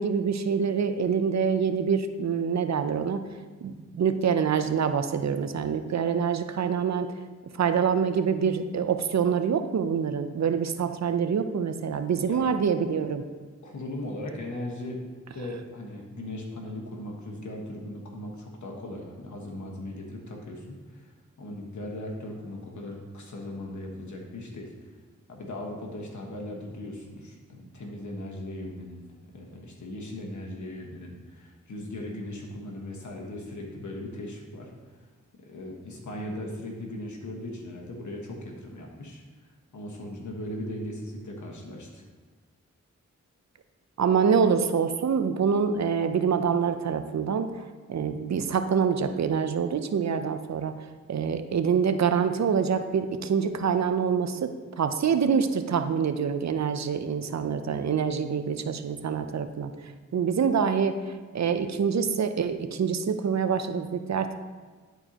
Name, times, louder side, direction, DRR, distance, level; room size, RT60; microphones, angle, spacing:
voice 1, 0.0-3.2 3.6-7.1 7.6-13.2 44.0-50.7 51.1-54.5 54.8-59.7 60.1-64.3, right 6 dB, 65° right, 9 dB, 0.6 m, -26 dB
voice 2, 13.6-15.0 15.3-21.1 21.4-24.7 25.3-29.1 29.3-35.1 35.5-39.2 39.7-42.0, left 1 dB, 75° left, 0 dB, 1.4 m, -38 dB
11.0 x 4.5 x 2.9 m, 1.4 s
cardioid pair, 55°, 30 cm